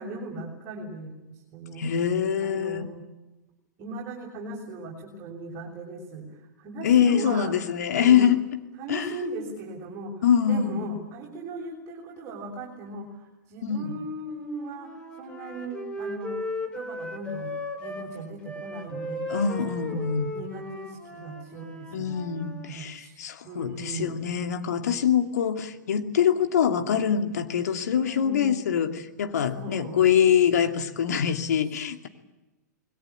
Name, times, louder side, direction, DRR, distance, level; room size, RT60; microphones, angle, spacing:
voice 1, 0.0-1.9 2.4-3.0 3.8-7.5 7.9-8.3 8.8-16.4 16.7-17.5 17.8-19.2 19.6-22.1 22.6-24.3 28.0-28.5 29.5-30.0, right 2 dB, 30° right, -2 dB, 6.4 m, -38 dB
voice 2, 1.8-2.9 6.8-8.4 8.9-9.1 10.2-10.8 13.6-13.9 19.3-20.3 21.9-32.1, left 8 dB, 60° left, 7 dB, 2.7 m, -24 dB
Wind instrument woodwind instrument, 14.3-18.1 18.4-22.7, left 2 dB, 10° left, 4.8 m, -36 dB
27.5 x 21.5 x 8.7 m, 1.0 s
figure-of-eight pair, 105°, 10 cm